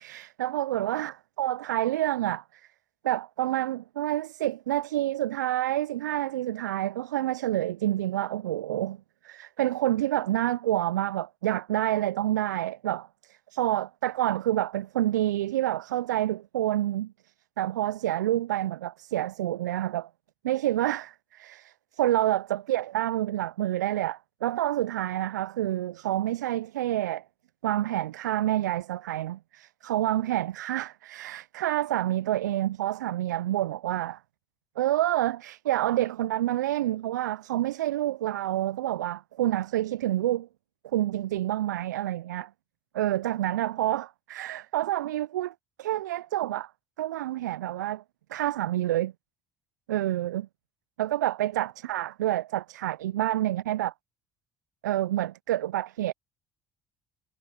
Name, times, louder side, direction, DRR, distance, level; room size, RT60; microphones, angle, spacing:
voice 1, 0.0-2.6 3.0-9.0 9.2-17.1 17.6-20.1 20.4-27.2 27.6-34.2 34.8-40.5 40.9-42.5 42.9-46.7 47.0-48.0 48.3-49.1 49.9-50.5 51.0-53.9 54.8-56.1, right 14 dB, 80° right, 0.6 m, -28 dB
figure-of-eight pair, 55°, 10 cm